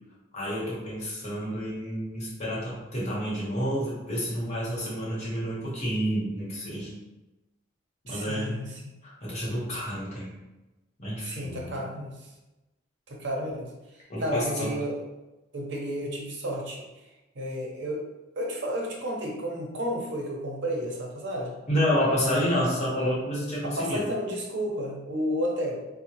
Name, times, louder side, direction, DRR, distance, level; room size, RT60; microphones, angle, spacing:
voice 1, 0.3-6.9 8.0-8.6 9.0-10.3 11.0-11.8 14.1-14.7 21.7-24.0, equal, 35° left, -7 dB, 1.1 m, -29 dB
voice 2, 8.1-8.9 11.2-12.3 13.1-15.0 15.5-16.8 17.3-18.0 18.4-21.6 23.6-25.8, equal, 65° right, -1 dB, 0.7 m, -32 dB
3.5 x 2.1 x 2.9 m, 1.0 s
head